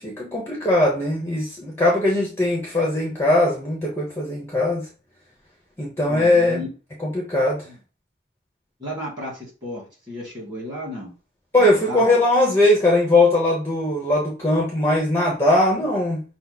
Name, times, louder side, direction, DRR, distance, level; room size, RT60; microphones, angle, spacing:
voice 1, 0.0-4.9 5.8-6.6 7.0-7.6 11.5-16.2, left 1 dB, 15° left, -2 dB, 0.8 m, -20 dB
voice 2, 6.1-6.7 7.7-7.8 8.8-11.1 11.6-12.2, equal, 20° right, -5 dB, 2.2 m, -33 dB
5.7 x 2.0 x 4.0 m, 0.33 s
head